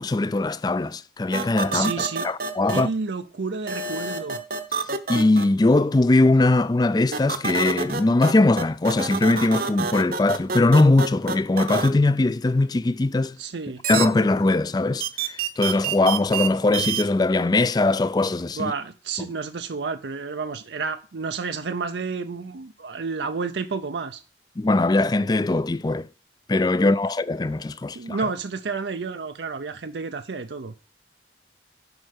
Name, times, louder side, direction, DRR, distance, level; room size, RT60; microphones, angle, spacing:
voice 1, 0.0-1.9 2.2-2.9 5.1-13.4 13.9-18.7 24.6-26.1 26.5-28.3, left 2 dB, 20° left, 0.4 m, -21 dB
sound 1, 1.3-2.8 3.7-5.5 7.1-8.3 8.6-11.9 13.8-14.1 15.0-16.5 16.7-17.0, right 5 dB, 55° right, 0.9 m, -27 dB
voice 2, 1.7-2.3 2.7-4.4 13.4-13.8 18.5-24.2 27.9-30.7, right 4 dB, 80° right, 0.6 m, -30 dB
7.9 x 5.4 x 6.5 m
head